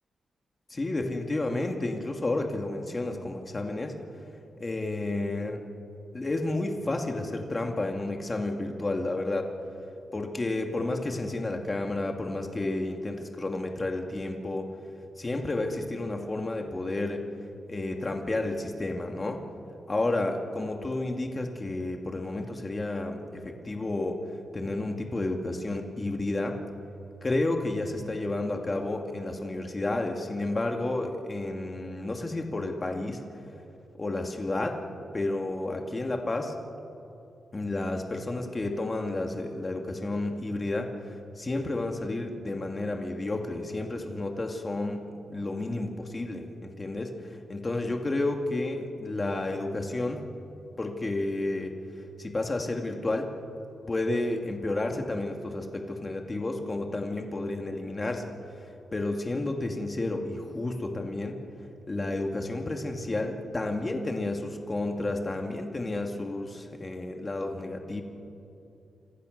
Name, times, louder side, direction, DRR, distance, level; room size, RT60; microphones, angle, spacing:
voice 1, 0.7-3.9 4.6-5.7 6.1-9.5 10.1-14.7 15.2-17.3 17.7-19.4 19.9-24.2 24.5-26.6 27.2-33.2 33.9-34.8 35.1-36.5 37.5-45.0 45.3-50.2 50.8-51.7 52.2-53.3 53.9-58.2 58.6-61.4 61.9-68.0, left 2 dB, 20° left, 3 dB, 2.3 m, -31 dB
27.5 x 26.5 x 6.7 m, 2.8 s
wide cardioid pair, 170°, 0 cm